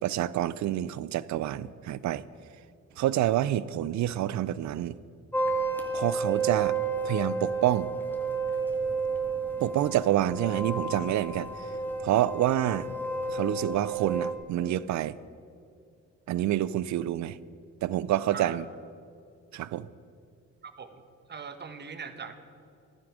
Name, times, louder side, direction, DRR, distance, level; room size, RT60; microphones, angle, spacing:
voice 1, 0.0-2.2 3.0-5.0 5.9-6.8 7.0-7.9 9.6-11.5 12.0-12.9 13.3-15.2 16.3-17.4 17.8-18.7 19.5-19.9, right 13 dB, 70° right, 18 dB, 0.5 m, -27 dB
sound 1, 5.3-14.3, right 4 dB, 5° left, 1.8 m, -31 dB
voice 2, 20.6-21.0 21.3-22.3, right 5 dB, 35° right, 8 dB, 1.2 m, -40 dB
15.0 x 11.0 x 5.0 m, 2.4 s
cardioid pair, 90°, 30 cm